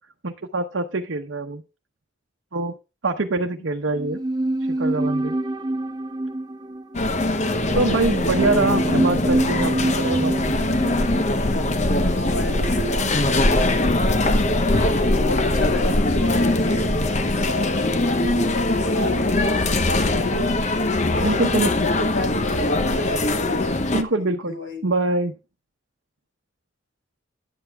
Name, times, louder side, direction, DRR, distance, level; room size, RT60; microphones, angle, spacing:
voice 1, 0.2-1.6 2.5-2.7 3.0-4.2 4.7-5.3 7.7-10.7 21.2-21.7 23.9-25.3, right 2 dB, 75° right, 2 dB, 0.9 m, -24 dB
sound 1, 3.9-13.3 13.5-13.6, right 1 dB, 20° right, 0.4 m, -27 dB
sound 2, 6.9-24.0, left 2 dB, 35° left, 0.9 m, -21 dB
voice 2, 11.9-13.8 14.6-16.9 17.4-20.7 21.1-23.8 24.1-24.8, left 1 dB, 85° left, 0 dB, 5.1 m, -31 dB
10.0 x 8.0 x 3.5 m, 0.28 s
head